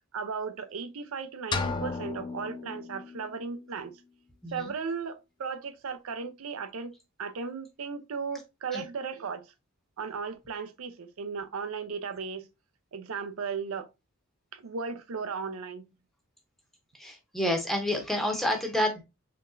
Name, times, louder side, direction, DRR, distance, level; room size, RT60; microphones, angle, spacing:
voice 1, 0.1-3.9 4.5-6.9 7.2-9.4 10.0-12.5 12.9-13.9 14.5-15.9, right 5 dB, 90° right, 0.5 m, -36 dB
sound 1, 1.5-3.5, left 4 dB, 20° left, 0.3 m, -34 dB
voice 2, 4.4-4.7 8.7-8.8 16.9-19.0, left 1 dB, ahead, 0.7 m, -29 dB
3.9 x 3.3 x 2.5 m
head